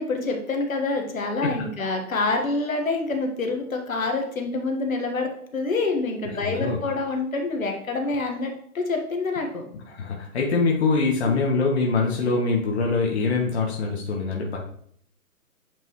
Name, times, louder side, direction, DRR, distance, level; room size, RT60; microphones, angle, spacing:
voice 1, 0.0-9.6 11.2-11.4, left 3 dB, 60° left, 3 dB, 1.6 m, -27 dB
voice 2, 6.3-6.8 9.9-14.6, left 4 dB, 45° left, -1 dB, 1.4 m, -24 dB
8.5 x 5.3 x 3.1 m, 0.64 s
figure-of-eight pair, 150°, 45 cm